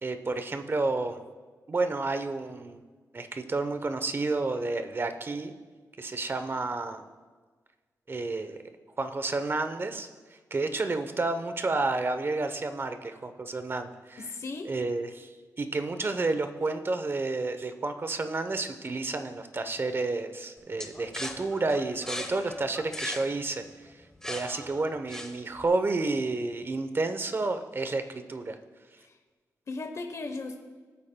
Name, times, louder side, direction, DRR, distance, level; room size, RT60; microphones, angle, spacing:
voice 1, 0.0-1.2 1.7-2.8 3.1-5.5 6.0-7.0 8.1-8.6 9.0-10.1 10.5-14.2 14.6-15.3 15.6-23.6 24.2-28.6, right 3 dB, 35° right, 8 dB, 0.8 m, -30 dB
voice 2, 14.2-14.7 29.0-29.1 29.7-30.6, left 3 dB, 50° left, 5 dB, 1.0 m, -36 dB
sound 1, 20.8-25.6, left 1 dB, 10° left, 1.1 m, -38 dB
19.0 x 8.6 x 2.3 m, 1.4 s
cardioid pair, 90°, 6 cm